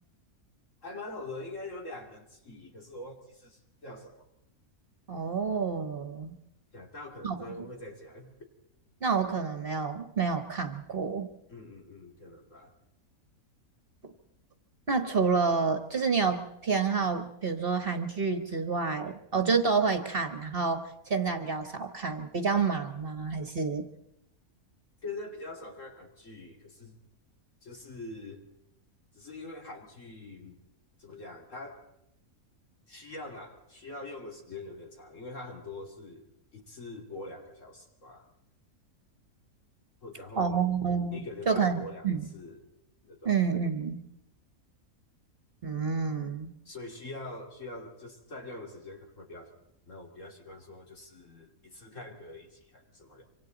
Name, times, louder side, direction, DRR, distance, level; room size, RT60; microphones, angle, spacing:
voice 1, 0.8-4.2 6.7-8.4 11.5-12.7 25.0-27.0 27.6-28.4 29.1-30.6 31.0-31.9 32.9-36.3 36.5-38.2 40.0-40.6 41.1-42.7 43.0-43.4 46.7-49.5 49.9-53.2, left 2 dB, 55° left, 1 dB, 3.4 m, -44 dB
voice 2, 5.1-6.4 7.2-7.7 9.0-11.3 14.0-14.1 14.9-23.9 40.4-42.3 43.2-44.1 45.6-46.5, right 5 dB, 40° right, 7 dB, 1.4 m, -29 dB
26.0 x 25.5 x 4.0 m, 0.80 s
omnidirectional pair, 1.5 m